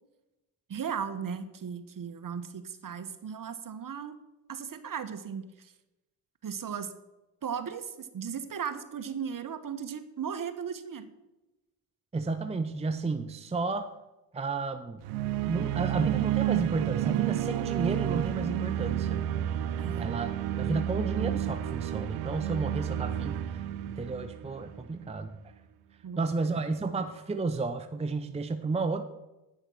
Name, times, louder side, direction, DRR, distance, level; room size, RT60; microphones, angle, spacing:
voice 1, 0.7-4.2 4.5-5.7 6.4-6.9 7.4-11.1 19.8-20.1 26.0-26.5, right 7 dB, 40° right, 10 dB, 1.2 m, -36 dB
voice 2, 12.1-13.9 14.3-15.0 15.4-19.2 20.0-20.3 20.6-25.3 26.2-29.0, right 3 dB, 15° right, 8 dB, 0.7 m, -32 dB
sound 1, 15.0-25.1, right 12 dB, 90° right, 0.7 m, -31 dB
9.7 x 6.4 x 6.3 m, 1.0 s
supercardioid pair, 65°, 49 cm